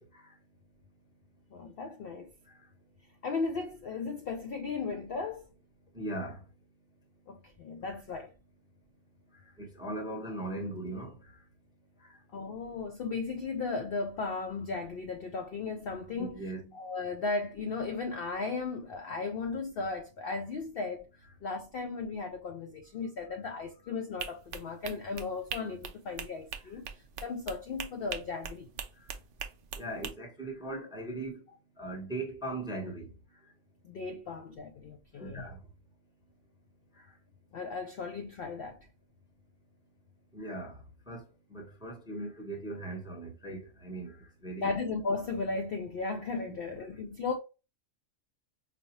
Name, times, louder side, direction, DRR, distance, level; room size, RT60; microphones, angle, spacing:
voice 1, 1.5-2.3 3.2-5.5 7.3-8.3 12.3-16.4 16.7-21.0 21.4-26.9 27.2-28.7 33.8-35.5 37.5-38.9 44.6-47.4, left 4 dB, 65° left, 0.6 m, -36 dB
voice 2, 5.9-6.4 9.6-11.2 16.1-16.7 29.8-31.4 31.8-33.1 35.2-35.6 40.3-40.8 41.1-41.2 41.5-44.2 44.4-44.7 46.5-46.8, right 2 dB, 5° right, 0.7 m, -39 dB
sound 1, 24.2-30.1, right 6 dB, 65° right, 0.5 m, -41 dB
4.9 x 2.1 x 2.9 m
omnidirectional pair, 1.4 m